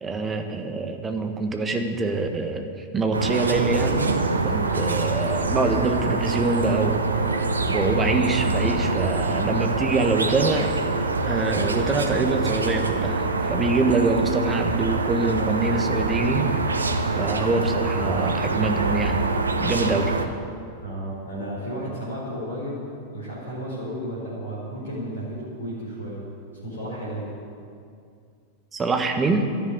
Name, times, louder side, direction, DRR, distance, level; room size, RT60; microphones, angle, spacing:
voice 1, 0.0-7.2 7.7-10.7 11.2-16.7 17.1-19.3 19.6-20.1 28.7-29.5, right 3 dB, 20° right, 5 dB, 1.5 m, -25 dB
sound 1, 3.1-20.3, right 3 dB, 75° right, 0.9 m, -25 dB
voice 2, 20.8-22.9 23.1-26.2 26.6-27.3, equal, 70° left, -6 dB, 4.2 m, -33 dB
12.5 x 10.5 x 9.0 m, 2.3 s
figure-of-eight pair, 90°, 0 cm